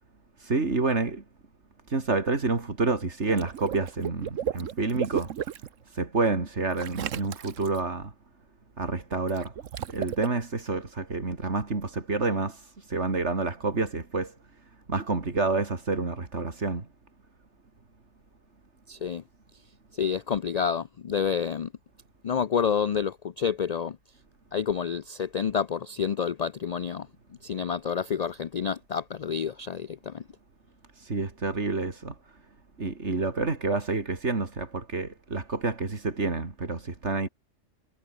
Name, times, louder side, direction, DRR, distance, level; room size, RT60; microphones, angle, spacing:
voice 1, 0.4-1.2 1.9-5.3 5.9-8.1 8.8-9.5 9.9-14.3 14.9-16.9 31.0-32.1 32.8-37.3, right 3 dB, 65° right, 3.1 m, -28 dB
Water / Liquid, 3.2-5.7 6.8-7.8 9.3-10.3, right 10 dB, 85° right, 1.3 m, -34 dB
voice 2, 18.9-19.2 19.9-21.7 22.2-24.0 24.5-27.1 27.4-30.2, left 7 dB, 50° left, 0.5 m, -29 dB
omnidirectional pair, 1.3 m